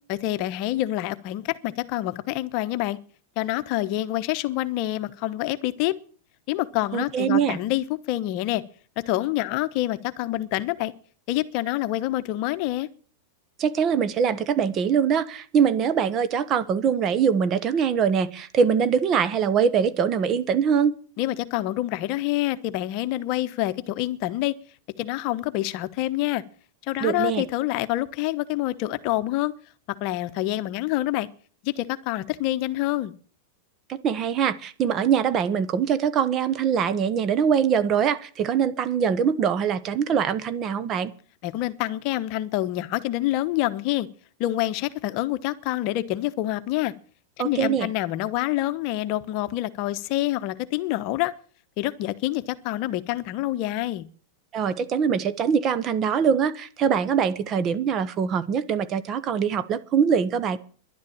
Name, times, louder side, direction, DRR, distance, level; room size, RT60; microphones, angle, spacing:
voice 1, 0.1-3.0 3.4-5.9 6.5-8.6 9.0-10.9 11.3-12.9 21.2-24.5 25.0-26.4 26.9-29.5 30.0-31.3 31.6-33.1 41.4-44.1 44.4-46.9 47.4-51.3 51.8-54.1, left 15 dB, 50° left, 12 dB, 0.9 m, -27 dB
voice 2, 6.9-7.6 13.6-20.9 27.0-27.5 33.9-41.1 47.4-47.9 54.5-60.6, right 7 dB, 35° right, 14 dB, 1.0 m, -23 dB
11.5 x 9.5 x 8.7 m, 0.43 s
hypercardioid pair, 125°, 0 cm